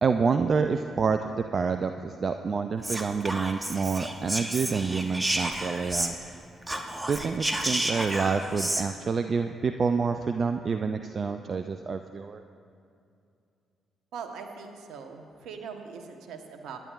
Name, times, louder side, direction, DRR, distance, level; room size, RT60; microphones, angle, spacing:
voice 1, 0.0-6.2 7.1-12.4, right 5 dB, 45° right, 8 dB, 0.4 m, -28 dB
Whispering, 2.8-6.4 6.6-8.9, right 1 dB, 15° right, 1.1 m, -31 dB
voice 2, 14.1-16.8, right 6 dB, 65° right, 5 dB, 1.1 m, -41 dB
24.5 x 10.5 x 2.5 m, 2.5 s
figure-of-eight pair, 40°, 0 cm